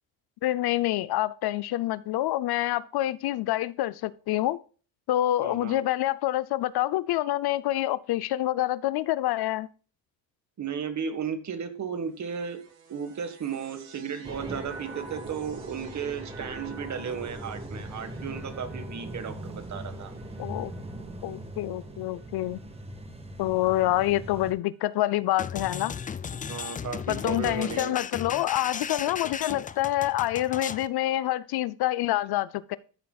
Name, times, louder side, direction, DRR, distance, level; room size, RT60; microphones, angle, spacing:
voice 1, 0.4-4.6 5.1-9.7 20.4-20.7 21.2-22.6 23.4-25.9 27.1-32.8, left 15 dB, 65° left, 0.6 m, -27 dB
voice 2, 5.4-5.8 10.6-12.6 12.9-20.1 26.4-27.9, right 7 dB, 40° right, 1.6 m, -34 dB
sound 1, 12.0-23.5 24.3-25.0, right 4 dB, 85° right, 3.5 m, -51 dB
sound 2, 14.2-24.5, right 1 dB, 15° right, 1.5 m, -40 dB
sound 3, 25.4-30.9, left 6 dB, 20° left, 0.4 m, -36 dB
13.0 x 6.9 x 2.3 m
cardioid pair, 105°, 42 cm